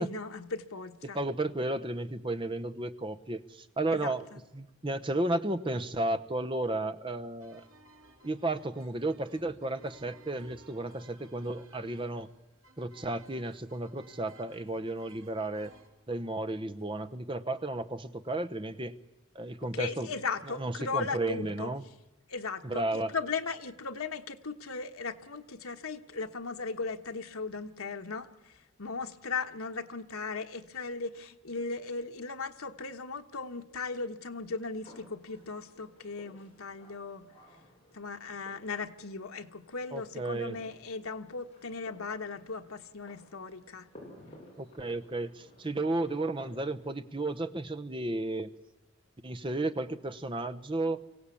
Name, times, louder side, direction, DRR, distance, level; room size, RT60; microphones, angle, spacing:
voice 1, 0.0-1.2 3.9-4.1 19.6-21.7 22.3-37.3 37.9-43.9, left 4 dB, 85° left, 6 dB, 1.3 m, -37 dB
voice 2, 1.1-4.3 4.5-7.6 8.2-12.3 12.8-15.7 16.1-18.9 19.3-20.1 20.6-21.8 22.6-23.1 39.9-40.6 44.6-48.5 49.2-51.0, right 2 dB, 25° right, 11 dB, 0.8 m, -33 dB
sound 1, 7.4-15.9, right 2 dB, 80° right, 3.2 m, -58 dB
sound 2, 34.8-46.9, left 1 dB, 30° left, 8.0 m, -57 dB
24.5 x 16.5 x 8.4 m, 0.99 s
head